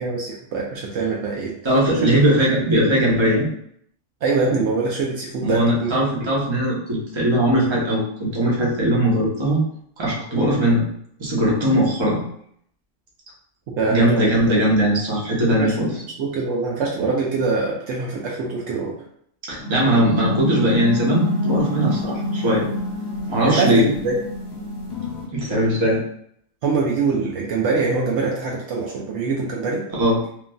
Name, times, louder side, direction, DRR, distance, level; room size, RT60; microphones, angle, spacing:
voice 1, 0.0-1.5 4.2-5.9 13.7-14.6 15.6-15.7 16.0-18.9 23.4-24.1 26.6-29.8, right 4 dB, 70° right, -3 dB, 0.8 m, -24 dB
voice 2, 1.6-3.5 5.4-9.6 10.0-10.8 11.2-12.2 13.9-15.9 19.5-22.7 23.3-23.8 25.3-26.0 29.9-30.2, right 1 dB, 25° right, -5 dB, 0.7 m, -19 dB
sound 1, 19.6-25.2, left 1 dB, 55° left, 1.1 m, -26 dB
3.0 x 2.5 x 2.2 m, 0.67 s
omnidirectional pair, 1.3 m